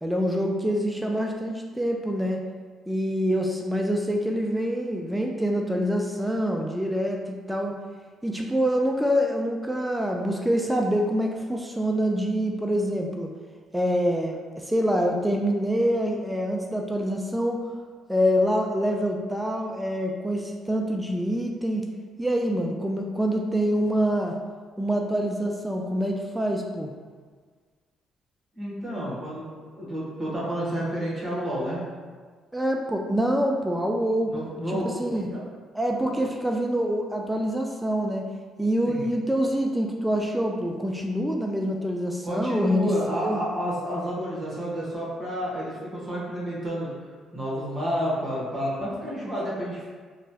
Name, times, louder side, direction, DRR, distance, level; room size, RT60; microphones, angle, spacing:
voice 1, 0.0-2.4 2.9-7.7 8.2-13.3 13.7-17.7 18.1-21.9 22.2-24.3 24.8-26.9 32.5-34.3 34.7-35.3 35.7-38.3 38.6-43.4, equal, 5° right, 1 dB, 0.3 m, -26 dB
voice 2, 28.5-29.5 29.8-31.8 34.3-35.4 38.9-39.1 42.2-46.9 47.3-49.9, equal, 35° right, -6 dB, 1.2 m, -30 dB
3.0 x 2.2 x 2.8 m, 1.5 s
supercardioid pair, 65°, 0 cm